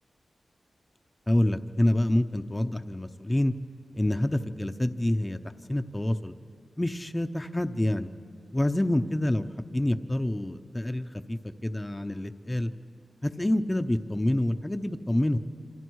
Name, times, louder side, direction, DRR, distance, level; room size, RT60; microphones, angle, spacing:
voice 1, 1.3-3.5 3.9-5.4 5.7-6.3 6.8-8.1 8.5-12.7 13.2-15.4, left 1 dB, 20° left, 8 dB, 0.8 m, -27 dB
27.5 x 26.5 x 4.8 m, 2.3 s
cardioid pair, 60°, 0 cm